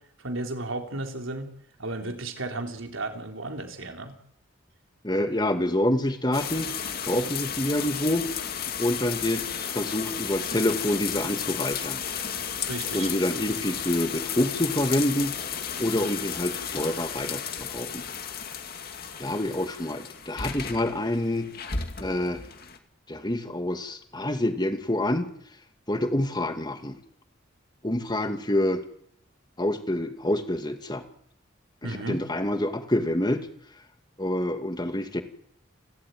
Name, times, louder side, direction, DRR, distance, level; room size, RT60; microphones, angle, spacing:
voice 1, 0.2-1.5 1.8-4.2 12.6-13.1 31.8-32.2, right 2 dB, 75° right, 4 dB, 3.7 m, -34 dB
voice 2, 5.0-6.7 7.0-8.3 8.8-12.0 12.9-15.4 15.8-18.1 19.2-21.5 22.0-22.4 23.1-25.3 25.9-27.0 27.8-28.8 29.6-31.0 31.8-33.5 34.2-35.2, left 1 dB, 20° left, 7 dB, 2.2 m, -27 dB
sound 1, 6.3-22.8, left 7 dB, 50° left, 2.4 m, -33 dB
29.0 x 13.5 x 9.4 m, 0.69 s
head